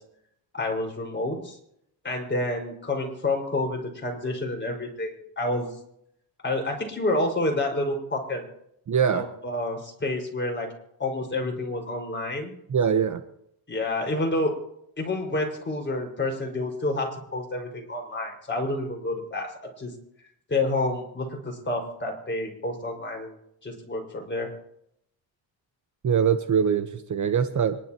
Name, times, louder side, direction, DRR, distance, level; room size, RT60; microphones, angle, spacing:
voice 1, 0.5-1.6 2.0-5.7 6.4-8.5 9.1-10.7 11.0-12.5 13.7-14.6 15.0-19.9 20.5-23.4 23.6-24.5, left 2 dB, 25° left, 1 dB, 5.3 m, -29 dB
voice 2, 8.9-9.3 12.7-13.2 26.0-27.8, right 7 dB, 40° right, 9 dB, 1.1 m, -23 dB
26.0 x 12.0 x 3.0 m, 0.73 s
cardioid pair, 95°, 45 cm